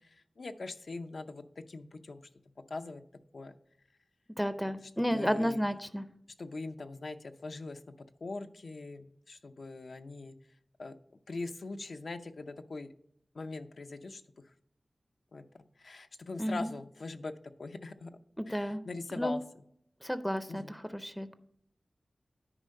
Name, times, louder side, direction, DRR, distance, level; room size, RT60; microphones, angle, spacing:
voice 1, 0.1-2.3 2.7-3.0 3.3-3.6 5.1-5.6 6.4-7.8 8.2-10.3 10.8-11.0 11.3-12.9 13.3-14.2 15.3-15.4 15.8-17.3 17.6-18.2 18.5-19.4 20.5-20.7, left 3 dB, 75° left, 8 dB, 0.6 m, -41 dB
voice 2, 4.4-6.1 16.4-16.7 18.4-18.8 19.2-19.3 20.0-21.4, equal, ahead, 11 dB, 0.5 m, -32 dB
9.9 x 4.5 x 5.3 m, 0.73 s
wide cardioid pair, 85°, 0 cm